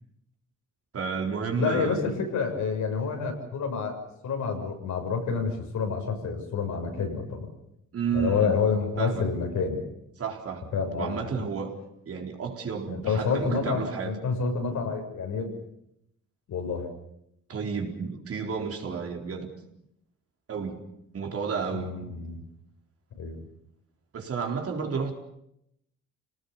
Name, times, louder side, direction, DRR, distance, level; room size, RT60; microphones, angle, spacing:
voice 1, 0.9-2.0 7.9-8.6 9.0-9.3 10.2-10.7 11.0-11.8 12.1-14.2 17.5-19.5 20.5-20.8 21.1-22.0 24.1-25.1, right 6 dB, 50° right, 3 dB, 4.2 m, -31 dB
voice 2, 1.6-7.5 8.1-9.8 10.7-11.5 12.9-15.5 16.5-16.9 21.7-22.4 23.2-23.5, left 5 dB, 70° left, 2 dB, 7.0 m, -28 dB
27.0 x 19.0 x 7.1 m, 0.77 s
cardioid pair, 90°, 30 cm